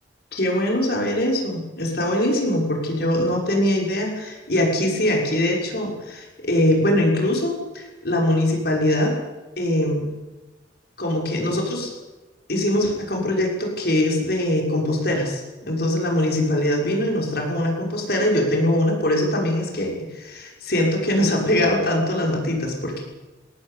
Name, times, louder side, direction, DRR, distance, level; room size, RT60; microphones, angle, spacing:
voice 1, 0.3-9.2 9.6-10.1 11.0-11.9 12.5-23.0, left 1 dB, 55° left, 0 dB, 6.4 m, -22 dB
21.5 x 18.0 x 8.7 m, 1.1 s
head